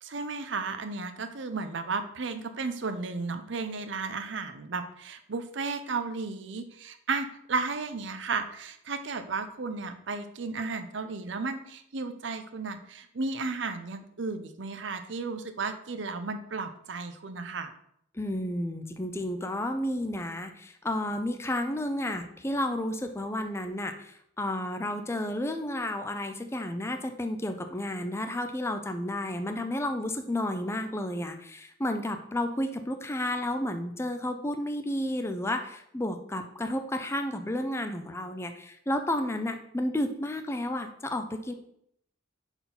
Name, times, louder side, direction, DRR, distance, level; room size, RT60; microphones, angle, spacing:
voice 1, 0.0-17.7, right 4 dB, 65° right, 9 dB, 0.7 m, -34 dB
voice 2, 18.1-41.5, left 1 dB, 15° left, 7 dB, 0.5 m, -32 dB
5.4 x 4.4 x 5.9 m, 0.72 s
head